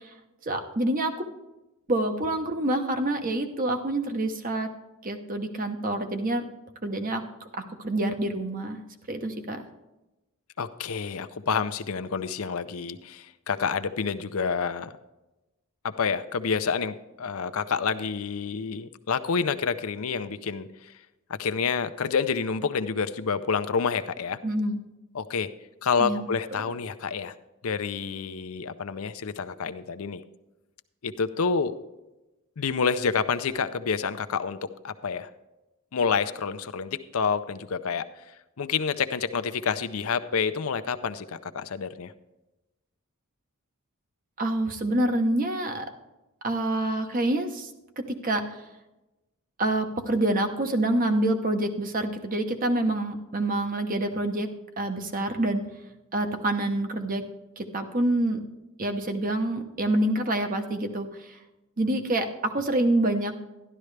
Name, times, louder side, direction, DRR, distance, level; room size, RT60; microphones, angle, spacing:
voice 1, 0.5-1.3 1.9-4.7 5.0-6.4 6.8-7.2 7.5-8.8 9.1-9.6 24.4-24.8 26.0-26.3 44.4-45.9 46.4-47.7 48.0-48.6 49.6-54.5 54.8-55.6 56.1-57.2 57.6-58.4 58.8-61.1 61.8-63.3, right 1 dB, 40° right, 6 dB, 0.9 m, -27 dB
voice 2, 10.6-15.0 15.8-20.9 21.3-24.4 25.1-25.5 25.8-27.3 27.6-30.2 31.0-31.8 32.6-34.6 34.8-35.3 35.9-38.1 38.6-42.1, left 5 dB, 70° left, 11 dB, 0.6 m, -28 dB
12.0 x 11.5 x 3.3 m, 1.0 s
head